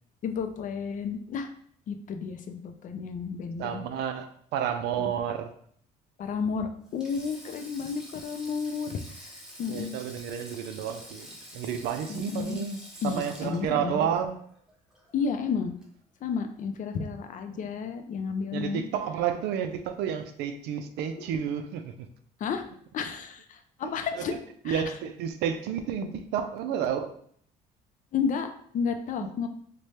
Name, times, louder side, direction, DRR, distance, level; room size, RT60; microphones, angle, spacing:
voice 1, 0.2-1.5 1.9-3.8 5.0-5.1 6.2-9.3 9.6-9.9 12.1-12.6 13.0-14.0 15.1-15.7 16.2-18.8 22.4-22.6 22.9-24.3 24.6-24.8 28.1-28.5 28.7-29.5, left 6 dB, 50° left, 7 dB, 0.5 m, -32 dB
voice 2, 3.6-5.5 9.7-11.3 11.5-12.8 13.0-14.4 17.5-17.7 18.5-22.1 23.8-24.4 24.6-27.1, right 8 dB, 80° right, 8 dB, 0.4 m, -31 dB
Sink (filling or washing), 6.9-15.3 15.6-15.8 17.0-17.3, equal, 5° right, 0.9 m, -47 dB
sound 1, 19.3-22.2 22.5-22.9 23.3-23.4 23.7-24.4 25.1-25.8 26.5-26.7, left 3 dB, 70° left, 1.0 m, -57 dB
3.2 x 2.2 x 4.1 m, 0.62 s
cardioid pair, 110°, 17 cm